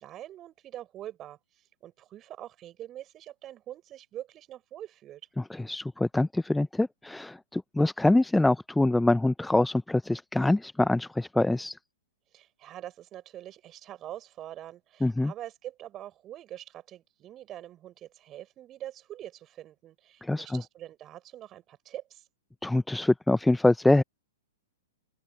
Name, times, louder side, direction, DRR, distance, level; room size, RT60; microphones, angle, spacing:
voice 1, 0.0-5.2 12.3-22.3, right 12 dB, 30° right, 6.2 m, -44 dB
voice 2, 5.7-11.8 15.0-15.3 20.2-20.6 22.6-24.0, left 2 dB, 5° left, 0.6 m, -24 dB
open air
figure-of-eight pair, 110°, 0 cm